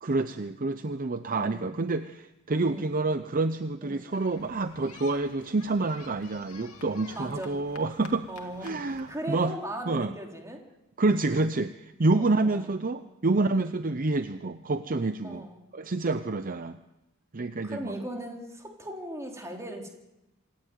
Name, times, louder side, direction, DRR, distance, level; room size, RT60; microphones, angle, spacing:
voice 1, 0.0-8.3 8.6-9.5 9.9-10.1 11.0-15.4 15.7-16.8 17.3-17.9, right 3 dB, 40° right, 10 dB, 0.7 m, -28 dB
voice 2, 1.3-1.7 2.7-2.9 3.8-4.0 7.1-7.6 8.3-10.6 12.1-12.7 13.4-13.6 15.2-15.6 17.6-19.9, right 1 dB, 15° right, 1 dB, 3.6 m, -38 dB
sound 1, 4.1-9.2, left 4 dB, 85° left, 2.5 m, -49 dB
26.5 x 11.5 x 9.3 m, 0.95 s
head